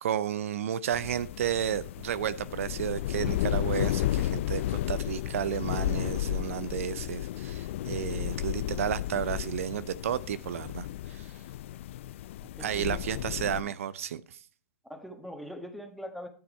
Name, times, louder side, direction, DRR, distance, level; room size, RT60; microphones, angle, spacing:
voice 1, 0.0-11.4 12.6-14.4, right 9 dB, 70° right, 17 dB, 0.6 m, -32 dB
sound 1, 0.9-13.6, left 13 dB, 60° left, 0.4 m, -33 dB
voice 2, 12.4-13.2 13.6-13.8 14.9-16.3, equal, ahead, 7 dB, 1.6 m, -42 dB
11.5 x 6.9 x 4.3 m, 0.44 s
hypercardioid pair, 120°, 8 cm